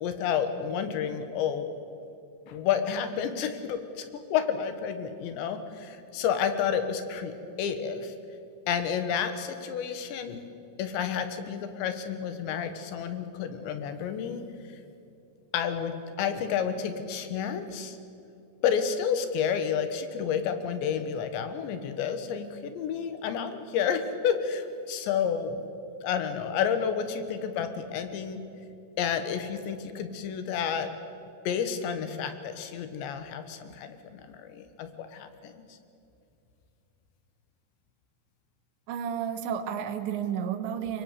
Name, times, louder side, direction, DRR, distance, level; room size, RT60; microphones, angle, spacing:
voice 1, 0.0-1.7 2.5-8.1 8.7-10.5 10.8-14.4 15.5-18.0 18.6-25.6 26.0-28.4 29.0-30.9 31.5-35.5, left 7 dB, 75° left, 9 dB, 3.5 m, -30 dB
voice 2, 38.9-41.0, right 8 dB, 75° right, 9 dB, 3.4 m, -31 dB
23.0 x 22.5 x 8.3 m, 2.6 s
omnidirectional pair, 5.3 m